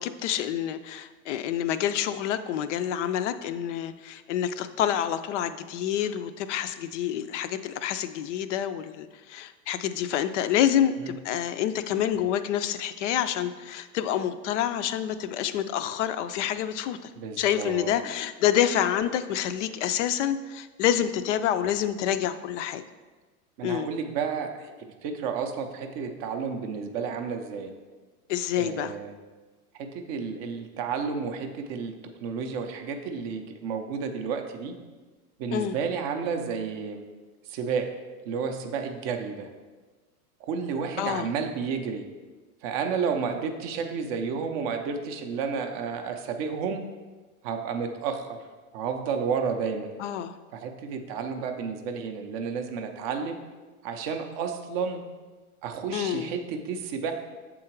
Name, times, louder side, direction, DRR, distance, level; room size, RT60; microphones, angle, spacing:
voice 1, 0.0-17.1 17.4-22.8 23.6-23.9 28.3-28.9 35.5-35.8 41.0-41.3 50.0-50.3 55.9-56.3, left 10 dB, 55° left, 12 dB, 0.5 m, -27 dB
voice 2, 17.2-17.9 23.6-24.7 25.0-27.7 28.5-29.2 29.8-31.9 32.2-34.7 35.4-37.0 37.5-37.9 38.3-39.5 40.4-42.0 42.6-46.8 47.4-48.4 48.7-49.9 50.5-53.4 53.8-55.0 55.6-57.1, right 6 dB, 25° right, 5 dB, 0.4 m, -31 dB
7.2 x 3.8 x 4.4 m, 1.3 s
hypercardioid pair, 130°, 46 cm